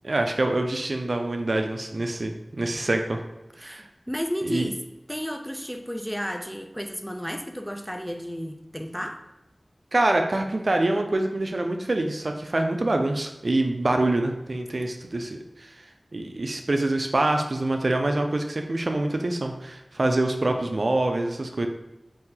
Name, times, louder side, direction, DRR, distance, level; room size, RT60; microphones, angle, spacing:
voice 1, 0.0-3.2 3.6-3.9 4.4-4.7 9.9-15.9 16.1-21.7, right 2 dB, 60° right, 4 dB, 0.4 m, -25 dB
voice 2, 3.6-4.8 5.1-9.2, equal, 5° left, 5 dB, 0.4 m, -32 dB
4.2 x 2.7 x 3.8 m, 0.96 s
wide cardioid pair, 60°, 0 cm